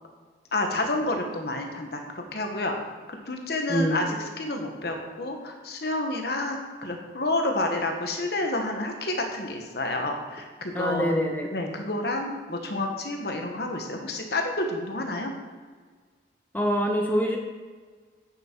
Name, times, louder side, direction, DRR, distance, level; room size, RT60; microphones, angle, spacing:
voice 1, 0.5-2.8 3.1-11.1 11.5-15.3, left 2 dB, 60° left, 3 dB, 1.2 m, -29 dB
voice 2, 3.7-4.1 10.7-11.5 16.5-17.4, equal, 10° left, 2 dB, 0.7 m, -25 dB
8.2 x 7.1 x 4.5 m, 1.5 s
head